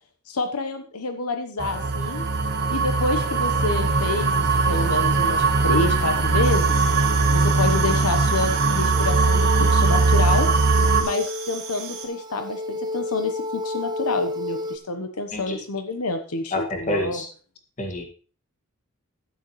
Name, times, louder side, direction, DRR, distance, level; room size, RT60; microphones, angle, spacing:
voice 1, 0.3-2.2 2.7-6.9 7.3-10.5 11.0-17.2, left 3 dB, 85° left, 7 dB, 1.1 m, -28 dB
sound 1, 1.6-11.0, right 4 dB, 50° right, 1.4 m, -20 dB
sound 2, 6.4-12.1, right 7 dB, 65° right, 2.2 m, -37 dB
sound 3, 8.9-14.8, left 2 dB, 20° right, 0.6 m, -31 dB
voice 2, 16.5-17.3 17.8-18.0, left 1 dB, 35° left, 2 dB, 2.1 m, -28 dB
12.0 x 9.5 x 3.2 m, 0.37 s
head